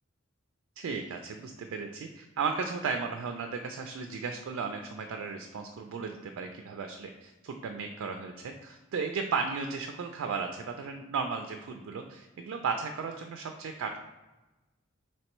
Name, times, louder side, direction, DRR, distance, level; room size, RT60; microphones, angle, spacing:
voice 1, 0.8-14.0, right 5 dB, 90° right, 5 dB, 0.3 m, -35 dB
4.3 x 3.1 x 3.0 m, 1.1 s
head